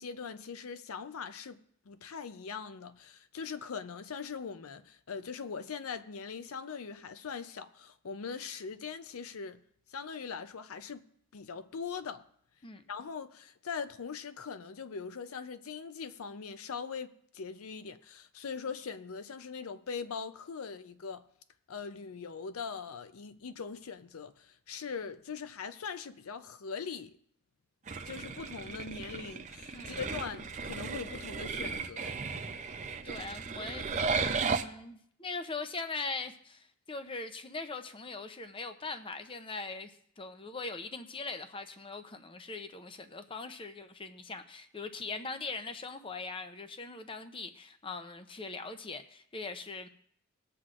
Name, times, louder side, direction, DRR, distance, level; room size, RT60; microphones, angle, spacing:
voice 1, 0.0-1.6 1.9-9.6 9.9-11.0 11.3-12.2 12.9-21.3 21.7-27.1 28.0-32.1, left 5 dB, 70° left, 0.5 m, -41 dB
sound 1, 27.9-34.6, right 4 dB, 35° right, 0.5 m, -35 dB
voice 2, 33.0-49.9, left 3 dB, 25° left, 0.6 m, -41 dB
20.0 x 7.7 x 2.5 m
head